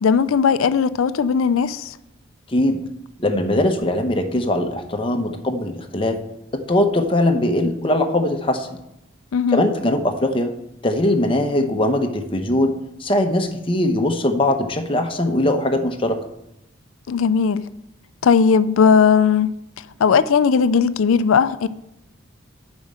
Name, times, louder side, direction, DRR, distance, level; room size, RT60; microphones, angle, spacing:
voice 1, 0.0-2.0 9.3-9.6 17.1-17.7 18.2-19.5 20.0-21.7, left 6 dB, 85° left, 0.4 m, -17 dB
voice 2, 3.2-6.2 6.7-8.8 9.5-10.5 10.8-16.2, left 1 dB, 25° left, 0.8 m, -20 dB
7.1 x 5.3 x 7.4 m
head